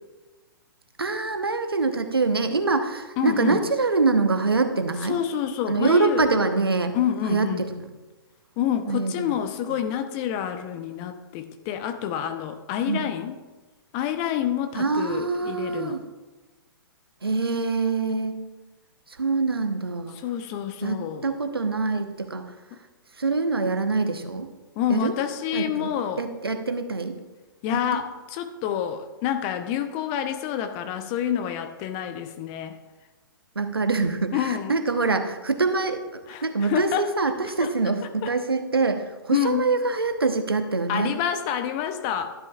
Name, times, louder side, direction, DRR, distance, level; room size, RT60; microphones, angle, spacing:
voice 1, 1.0-5.2 5.7-6.9 7.3-7.5 7.8-7.9 8.9-9.3 12.9-13.1 14.8-16.0 17.2-18.4 19.2-20.2 20.8-22.5 23.2-24.5 24.9-25.1 25.5-25.9 26.2-27.2 27.7-28.0 33.5-41.1, right 3 dB, 85° right, 7 dB, 1.0 m, -24 dB
voice 2, 3.2-3.6 5.0-6.3 6.9-7.7 8.6-13.4 13.9-16.0 20.2-21.3 22.7-22.8 24.8-26.2 27.6-32.8 34.3-34.8 36.3-37.1 37.6-37.7 38.2-38.3 39.3-39.7 40.9-42.3, left 10 dB, 30° left, 8 dB, 0.8 m, -28 dB
12.0 x 11.0 x 2.4 m, 1.2 s
figure-of-eight pair, 120°, 12 cm